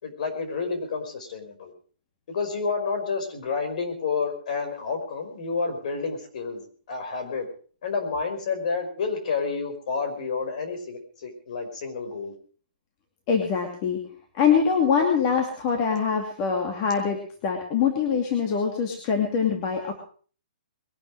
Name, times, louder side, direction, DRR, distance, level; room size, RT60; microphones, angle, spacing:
voice 1, 0.0-1.7 2.3-6.6 6.9-7.5 7.8-12.3, left 4 dB, 50° left, 5 dB, 5.3 m, -29 dB
voice 2, 13.3-20.0, left 6 dB, 30° left, 3 dB, 2.5 m, -24 dB
21.5 x 12.0 x 4.8 m, 0.42 s
hypercardioid pair, 165°, 5 cm